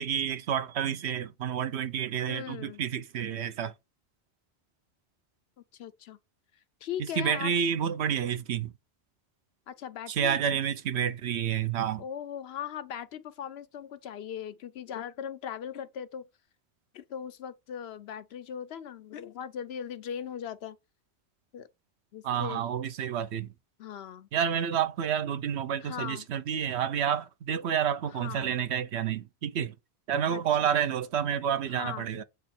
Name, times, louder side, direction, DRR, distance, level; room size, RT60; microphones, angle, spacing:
voice 1, 0.0-3.7 7.0-8.7 10.1-12.0 22.2-23.5 24.3-29.7 30.1-32.2, right 8 dB, 80° right, 1.0 m, -29 dB
voice 2, 2.3-2.8 5.8-6.2 6.8-7.5 9.7-10.6 12.0-16.3 16.9-20.8 21.5-21.7 22.1-22.7 23.8-24.3 25.8-26.2 28.1-28.6 30.3-30.7 31.7-32.1, left 9 dB, 70° left, 0.9 m, -39 dB
8.3 x 3.1 x 4.3 m
omnidirectional pair, 1.1 m